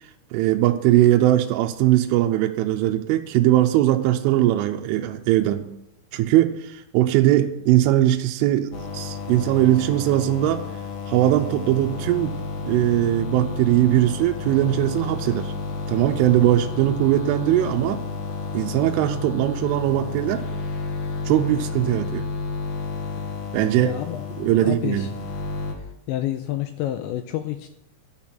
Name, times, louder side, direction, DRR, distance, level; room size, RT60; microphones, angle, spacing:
voice 1, 0.3-5.7 6.1-10.7 11.1-12.4 12.6-15.5 15.9-18.0 18.5-20.4 21.3-22.3 23.5-23.9 24.4-25.1, right 14 dB, 85° right, 4 dB, 3.0 m, -20 dB
sound 1, 8.7-25.7, left 4 dB, 60° left, 2.7 m, -31 dB
voice 2, 23.8-24.2 24.5-25.2 26.1-27.7, left 13 dB, 85° left, 8 dB, 2.6 m, -29 dB
12.5 x 6.0 x 8.8 m, 0.83 s
omnidirectional pair, 5.9 m